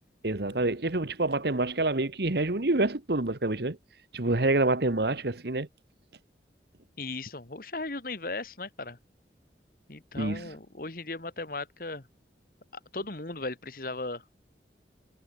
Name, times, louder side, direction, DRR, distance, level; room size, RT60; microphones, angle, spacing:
voice 1, 0.2-3.8 4.1-5.7 10.2-10.5, right 2 dB, 65° right, 1.3 m, -27 dB
voice 2, 7.0-9.0 9.9-12.1 12.9-14.2, left 2 dB, 50° left, 1.9 m, -37 dB
head